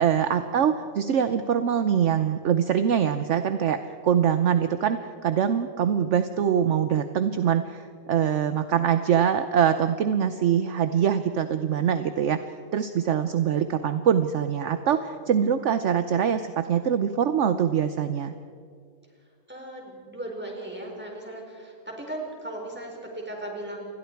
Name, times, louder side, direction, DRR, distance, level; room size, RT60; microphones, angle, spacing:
voice 1, 0.0-12.4 12.7-18.3, right 8 dB, 55° right, 10 dB, 0.9 m, -23 dB
voice 2, 19.5-21.7 22.1-23.9, right 1 dB, 5° right, -1 dB, 4.6 m, -37 dB
28.5 x 21.0 x 4.7 m, 2.3 s
omnidirectional pair, 1.9 m